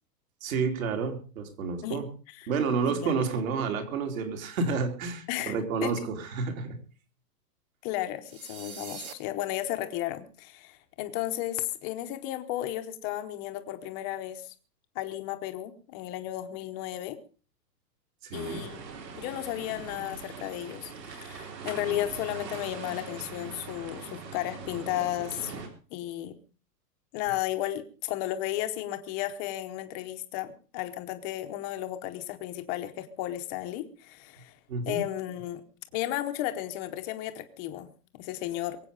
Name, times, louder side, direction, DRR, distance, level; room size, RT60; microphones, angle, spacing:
voice 1, 0.4-2.1 2.5-6.8 18.2-18.6 34.7-35.0, right 5 dB, 55° right, 5 dB, 3.7 m, -30 dB
voice 2, 5.3-6.0 7.8-14.5 14.9-17.2 18.3-18.8 19.1-25.5 25.9-26.4 27.1-34.5 34.9-35.6 35.9-37.9 38.2-38.8, left 14 dB, 15° left, 8 dB, 0.8 m, -34 dB
sound 1, 8.3-9.1, right 5 dB, 15° right, 0.8 m, -43 dB
sound 2, 18.3-25.7, right 5 dB, 80° right, 4.3 m, -42 dB
23.0 x 8.4 x 5.3 m, 0.38 s
hypercardioid pair, 170°, 50 cm